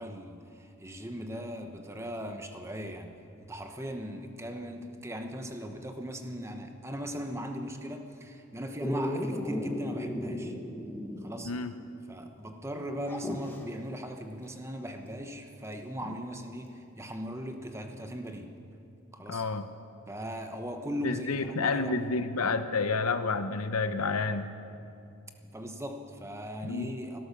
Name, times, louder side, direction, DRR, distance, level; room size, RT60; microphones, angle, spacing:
voice 1, 0.0-3.1 3.4-10.5 11.2-11.5 12.1-18.5 19.1-19.4 20.1-22.1 25.4-27.2, equal, 10° right, 5 dB, 0.9 m, -38 dB
Dog, 8.8-11.5 11.8-11.9 13.0-13.6 15.7-15.8, equal, 10° left, 1.3 m, -35 dB
voice 2, 19.3-19.7 21.0-24.5 26.6-26.9, left 4 dB, 90° left, 10 dB, 0.9 m, -29 dB
17.0 x 12.5 x 6.8 m, 2.6 s
head